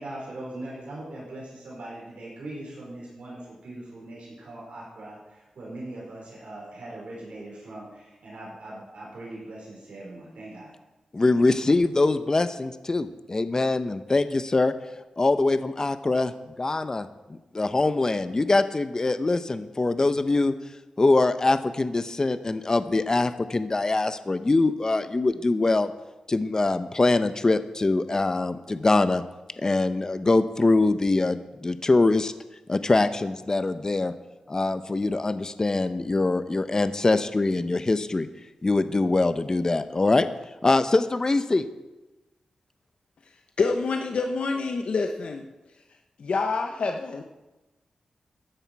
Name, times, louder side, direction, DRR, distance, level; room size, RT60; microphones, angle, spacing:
voice 1, 0.0-10.7 11.2-11.4, right 1 dB, 80° right, -5 dB, 4.9 m, -40 dB
voice 2, 11.1-14.7 15.2-20.5 21.0-25.9 26.3-29.2 29.6-32.3 32.7-34.1 34.5-38.3 38.6-40.3 40.6-41.7, left 2 dB, 30° left, 11 dB, 0.7 m, -23 dB
voice 3, 43.6-45.5 46.2-47.2, left 4 dB, 70° left, 4 dB, 0.9 m, -27 dB
14.5 x 10.0 x 4.7 m, 1.1 s
wide cardioid pair, 90°, 2 cm